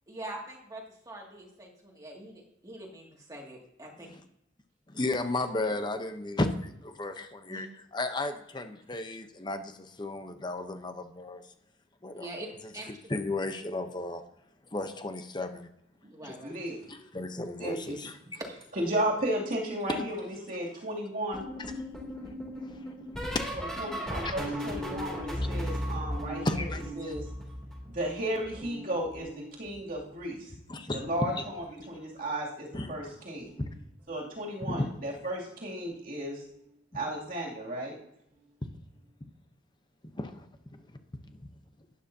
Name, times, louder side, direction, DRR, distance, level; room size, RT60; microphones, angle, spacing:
voice 1, 0.1-4.1 7.5-7.6 12.1-12.5 12.7-12.9 16.1-16.5 18.4-18.5, right 1 dB, 20° right, -1 dB, 2.3 m, -43 dB
voice 2, 5.0-11.5 12.0-12.3 12.9-14.2 14.7-15.7 16.2-18.4 19.9-20.0 22.1-23.9 24.2-24.3 26.4-27.1 30.7-31.4 31.9-32.2 32.7-32.9 33.6-33.7 34.6-34.9 40.1-40.8 41.3-41.4, left 2 dB, 25° left, 8 dB, 0.8 m, -35 dB
voice 3, 16.4-16.8 17.6-17.9 18.8-21.4 23.8-26.7 27.0-27.2 27.9-30.5 30.9-33.5 34.1-36.4 36.9-37.9, right 1 dB, 50° right, -3 dB, 2.7 m, -34 dB
sound 1, 21.3-28.1 28.4-30.0 31.0-31.3 31.6-31.9 33.5-33.7 34.1-34.3 35.9-36.0, equal, 5° left, 2.8 m, -37 dB
12.0 x 10.5 x 2.8 m, 0.79 s
head